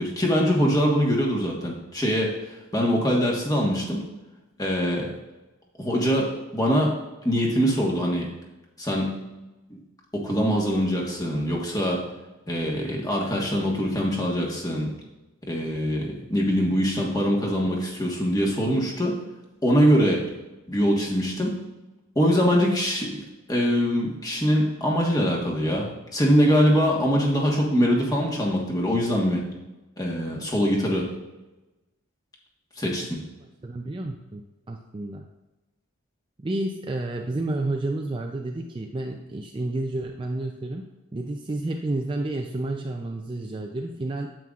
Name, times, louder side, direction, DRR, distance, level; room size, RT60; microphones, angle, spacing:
voice 1, 0.0-2.3 2.7-4.0 4.6-5.1 5.8-6.9 7.2-8.3 8.8-9.2 9.7-9.8 10.1-12.0 12.5-14.9 15.4-19.2 19.6-20.2 20.7-21.6 22.1-23.2 23.5-29.4 30.0-31.1 32.8-33.2, equal, 15° left, -2 dB, 1.3 m, -23 dB
voice 2, 33.4-35.3 36.4-40.8 41.1-44.3, right 2 dB, 20° right, 2 dB, 0.4 m, -30 dB
9.2 x 7.8 x 2.4 m, 1.1 s
head